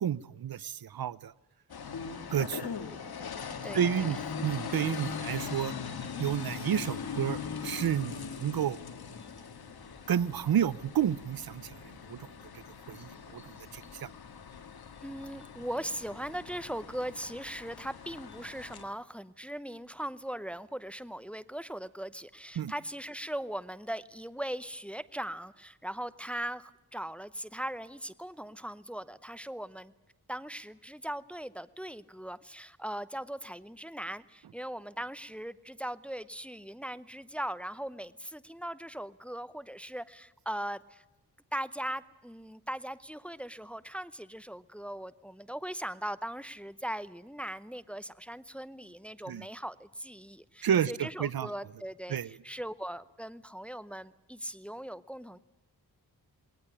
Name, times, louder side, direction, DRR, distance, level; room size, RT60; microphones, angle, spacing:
voice 1, 0.0-1.3 2.3-2.7 3.7-5.7 6.2-8.8 10.1-11.8 12.1-12.3 12.9-14.1 22.6-22.7 49.3-49.4 50.6-51.5 52.1-52.3, right 9 dB, 70° right, 20 dB, 0.7 m, -30 dB
sound 1, 1.7-18.8, left 6 dB, 70° left, 2.0 m, -41 dB
voice 2, 3.6-4.2 15.0-29.9 30.3-41.0 41.5-55.4, right 1 dB, 5° left, 15 dB, 0.7 m, -39 dB
21.0 x 19.0 x 9.8 m, 1.0 s
wide cardioid pair, 95°, 38 cm